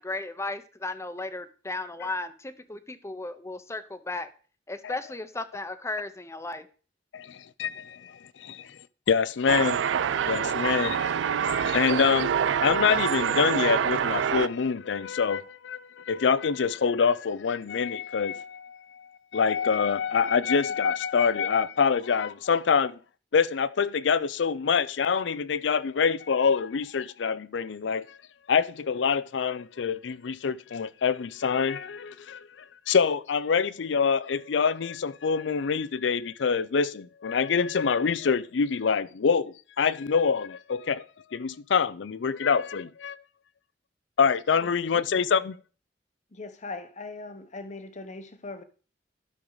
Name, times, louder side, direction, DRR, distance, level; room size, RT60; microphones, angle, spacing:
voice 1, 0.0-4.3 4.7-6.7, left 2 dB, 15° left, 0.7 m, -35 dB
voice 2, 7.1-8.8 9.1-9.8 10.3-12.3 12.6-23.0 23.3-28.2 28.5-32.5 32.9-41.0 41.3-43.2 44.2-45.6, left 6 dB, 80° left, 0.5 m, -26 dB
sound 1, 9.5-14.5, right 7 dB, 85° right, 0.4 m, -26 dB
voice 3, 44.5-45.1 46.3-48.6, left 3 dB, 40° left, 0.9 m, -40 dB
12.0 x 6.3 x 3.9 m
head